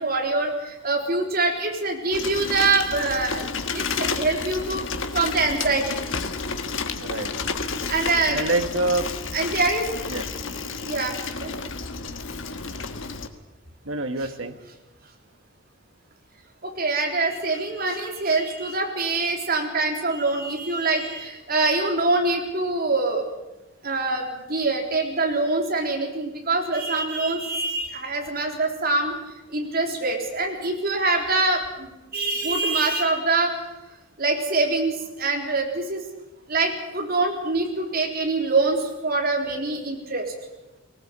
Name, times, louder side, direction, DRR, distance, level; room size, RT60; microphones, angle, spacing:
voice 1, 0.0-3.5 3.7-4.8 5.1-5.9 7.9-8.4 9.3-9.9 10.8-11.1 11.4-11.5 16.6-23.3 23.8-29.1 29.5-33.5 34.2-36.0 36.5-40.3, right 3 dB, 45° right, 1 dB, 3.8 m, -24 dB
Bicycle, 2.1-13.3, left 4 dB, 60° left, 1.5 m, -31 dB
voice 2, 7.0-7.3 8.3-9.1 10.1-10.2 13.8-14.6, right 2 dB, 60° right, 7 dB, 1.4 m, -26 dB
19.0 x 19.0 x 8.2 m, 1.0 s
head